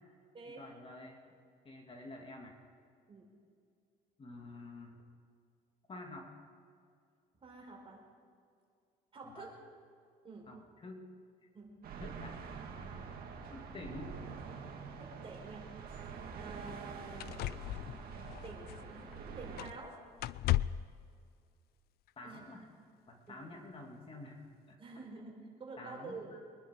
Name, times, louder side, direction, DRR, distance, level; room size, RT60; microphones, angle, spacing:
voice 1, 0.5-1.2 1.6-2.6 4.2-5.0 5.9-6.3 9.2-9.5 10.5-11.1 12.0-12.4 12.7-13.1 13.5-14.2 22.2-22.7 23.1-24.4 24.7-24.8 25.8-26.4, left 2 dB, 35° left, 2 dB, 2.4 m, -49 dB
voice 2, 7.4-8.0 9.1-9.5 10.2-10.5 11.5-11.8 13.3-13.5 15.0-15.7 16.3-18.1 18.4-19.9 22.2-22.4 22.7-22.8 23.3-23.5 24.8-25.3 25.6-26.3, right 3 dB, 35° right, 0 dB, 4.5 m, -49 dB
sound 1, 11.8-19.7, right 5 dB, 65° right, 2.2 m, -46 dB
sound 2, 15.9-16.0 16.7-16.8 17.2-19.1 19.6-19.9 20.2-21.0 22.1-22.2, left 15 dB, 70° left, 0.4 m, -36 dB
24.0 x 11.0 x 4.8 m, 2.3 s
cardioid pair, 110°, 17 cm